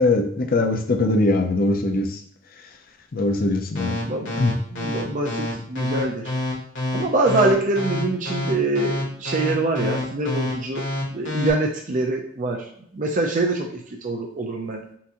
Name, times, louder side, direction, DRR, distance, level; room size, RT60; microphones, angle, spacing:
voice 1, 0.0-2.1 3.1-4.1 4.4-4.5, left 2 dB, 50° left, 5 dB, 0.6 m, -21 dB
sound 1, 3.8-11.5, left 1 dB, 70° left, 1.6 m, -27 dB
voice 2, 3.9-4.4 4.7-6.3 6.9-10.8 11.1-12.6 12.9-14.8, right 2 dB, 40° right, 1 dB, 0.5 m, -24 dB
5.7 x 2.6 x 2.9 m, 0.67 s
head